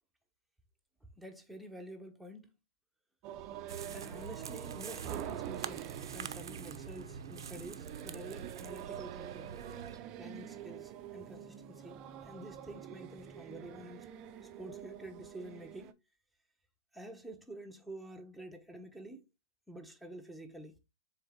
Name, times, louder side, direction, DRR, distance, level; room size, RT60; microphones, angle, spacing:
voice 1, 1.2-2.5 3.9-9.5 10.2-14.1 14.4-16.0 16.9-19.3 19.7-20.8, right 1 dB, ahead, 0.9 m, -49 dB
sound 1, 3.2-15.9, right 11 dB, 30° right, 0.6 m, -46 dB
sound 2, 3.7-10.0, right 7 dB, 85° right, 0.7 m, -45 dB
7.0 x 4.0 x 3.5 m
hypercardioid pair, 145°, 2 cm